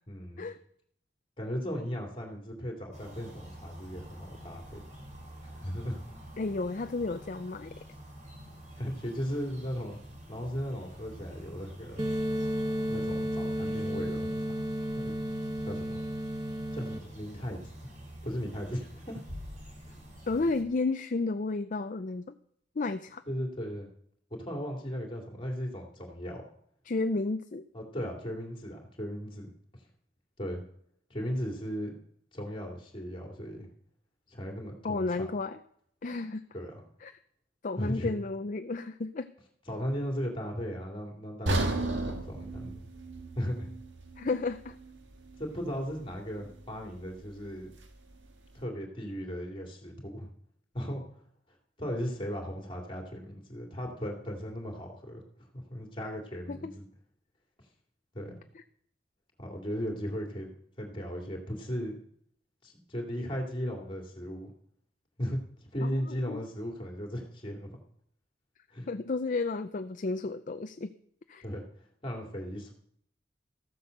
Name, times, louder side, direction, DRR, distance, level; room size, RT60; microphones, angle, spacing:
voice 1, 0.1-0.5 1.4-4.8 5.6-6.0 8.8-10.0 10.3-12.0 12.9-14.5 15.0-15.1 15.6-16.0 16.7-17.6 18.2-19.2 23.3-23.9 24.4-26.4 27.7-29.5 30.4-30.6 31.1-32.0 32.3-33.7 34.3-35.3 36.5-36.8 37.8-38.1 39.7-42.8 43.4-43.7 45.4-47.7 48.5-50.3 50.7-51.0 51.8-55.2 55.5-56.9 58.1-58.4 59.4-62.0 62.6-64.5 65.2-65.4 65.7-67.8 68.7-68.9 71.4-71.7 72.0-72.7, equal, 30° left, 1 dB, 2.6 m, -36 dB
sound 1, 2.9-20.6, equal, 40° right, 3.3 m, -48 dB
voice 2, 6.4-7.7 20.3-22.3 22.8-23.2 26.9-27.6 34.8-35.6 36.0-36.4 37.0-37.1 37.6-39.3 44.2-44.7 56.5-56.7 58.5-58.6 65.8-65.9 66.3-66.4 68.9-70.9 71.3-71.4, left 3 dB, 45° left, 9 dB, 0.5 m, -32 dB
sound 2, 12.0-17.0, equal, 20° right, 0.8 m, -32 dB
sound 3, 41.5-45.5 45.9-46.0 46.6-46.7, right 2 dB, 80° right, 1.8 m, -34 dB
14.5 x 8.2 x 6.5 m, 0.68 s
head